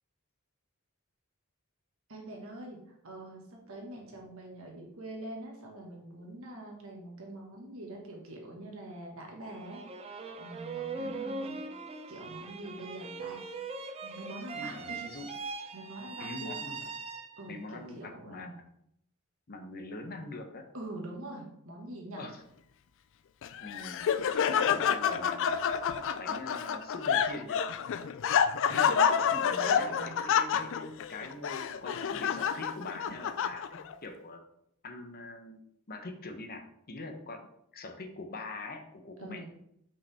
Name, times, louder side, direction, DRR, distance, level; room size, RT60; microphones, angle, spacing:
voice 1, 2.1-2.8 3.0-10.0 10.4-11.5 12.1-13.4 14.0-15.0 15.7-16.5 17.4-18.5 20.7-22.2 28.8-30.1 39.2-39.5, right 1 dB, 70° right, 0 dB, 1.6 m, -44 dB
sound 1, 9.5-17.7, right 4 dB, 30° right, 0.5 m, -40 dB
voice 2, 14.5-15.3 16.2-16.8 17.5-18.5 19.5-20.7 22.1-22.4 23.6-24.2 24.5-25.8 26.2-27.6 28.7-29.0 29.3-34.4 34.8-37.5 37.7-39.5, left 2 dB, 45° left, 5 dB, 0.8 m, -43 dB
Laughter, 23.4-33.9, left 7 dB, 65° left, 0.4 m, -29 dB
5.6 x 5.3 x 3.5 m, 0.75 s
head